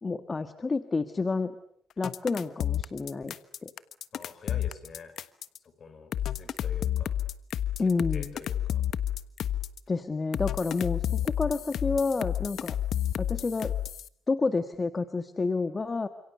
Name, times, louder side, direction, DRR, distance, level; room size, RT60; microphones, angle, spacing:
voice 1, 0.0-1.5 2.0-3.3 3.6-3.7 7.8-8.3 9.9-12.8 13.2-13.8 14.3-16.1, left 4 dB, 30° left, 9 dB, 1.6 m, -29 dB
sound 1, 2.0-5.6 6.1-9.8 10.3-14.1, left 11 dB, 70° left, 1.3 m, -30 dB
voice 2, 4.1-5.1 5.6-7.2 7.8-8.8, left 5 dB, 50° left, 10 dB, 6.4 m, -46 dB
30.0 x 27.5 x 6.9 m, 0.64 s
cardioid pair, 90°, 0 cm